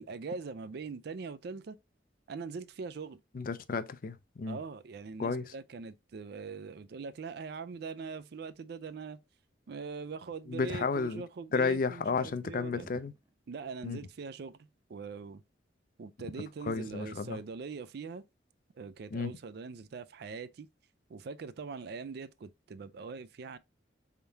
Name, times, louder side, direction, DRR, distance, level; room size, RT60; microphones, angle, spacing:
voice 1, 0.0-1.8 2.3-3.2 4.5-9.2 9.7-12.9 13.5-15.4 16.0-18.2 18.8-20.7 21.1-23.6, right 5 dB, 60° right, 0.4 m, -42 dB
voice 2, 3.3-4.6 5.2-5.5 10.5-11.2 11.5-13.1 13.8-14.0 16.7-17.4 19.1-19.3, left 4 dB, 50° left, 0.4 m, -32 dB
sound 1, 12.0-13.3, right 1 dB, 15° right, 0.7 m, -53 dB
4.6 x 3.6 x 2.7 m
head